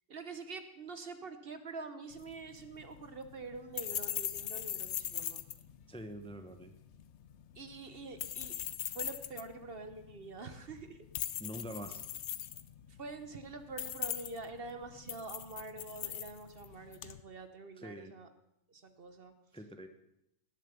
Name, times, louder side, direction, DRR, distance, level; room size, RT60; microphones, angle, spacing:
voice 1, 0.1-5.4 7.5-8.5 8.8-11.0 12.9-18.3 18.7-19.3, right 3 dB, 50° right, 9 dB, 1.1 m, -46 dB
sound 1, 2.1-17.2, left 10 dB, 65° left, 0.9 m, -42 dB
voice 2, 5.9-6.7 11.4-12.0 17.8-18.1 19.5-19.9, equal, 5° left, 7 dB, 0.8 m, -45 dB
18.5 x 7.4 x 6.9 m, 0.83 s
omnidirectional pair, 1.3 m